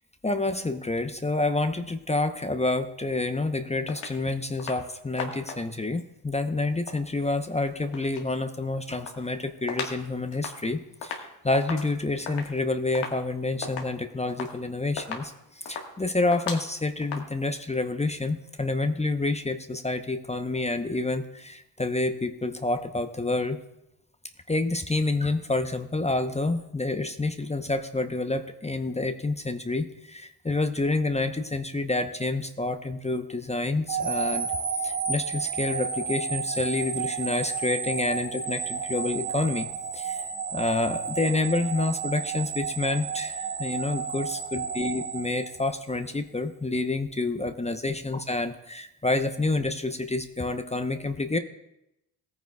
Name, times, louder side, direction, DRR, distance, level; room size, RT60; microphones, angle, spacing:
voice 1, 0.2-23.6 24.5-34.5 34.8-39.7 39.9-40.3 40.5-51.4, left 2 dB, 15° left, 8 dB, 0.8 m, -28 dB
sound 1, 3.9-4.2 4.6-4.9 5.2-5.8 6.7-8.3 8.7-10.0 10.3-17.2, left 5 dB, 80° left, 1.6 m, -38 dB
sound 2, 33.9-46.0, right 6 dB, 50° right, 3.6 m, -32 dB
17.5 x 9.5 x 2.3 m, 0.84 s
hypercardioid pair, 45°, 42 cm